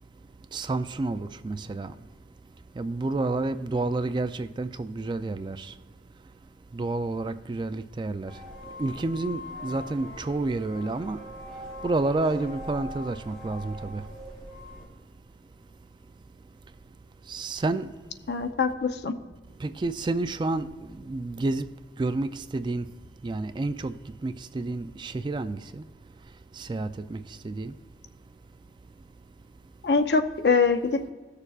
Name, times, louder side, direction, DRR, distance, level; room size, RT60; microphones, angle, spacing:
voice 1, 0.5-2.0 2.8-5.7 6.7-8.4 8.8-11.2 11.5-14.1 17.3-17.9 19.6-21.7 22.0-22.9 23.2-25.8 26.5-27.8, right 2 dB, 25° right, 0.3 m, -30 dB
sound 1, 8.2-14.8, left 1 dB, 35° left, 3.1 m, -41 dB
voice 2, 18.3-19.2 29.8-31.1, left 4 dB, 70° left, 0.6 m, -23 dB
16.5 x 6.7 x 2.4 m
head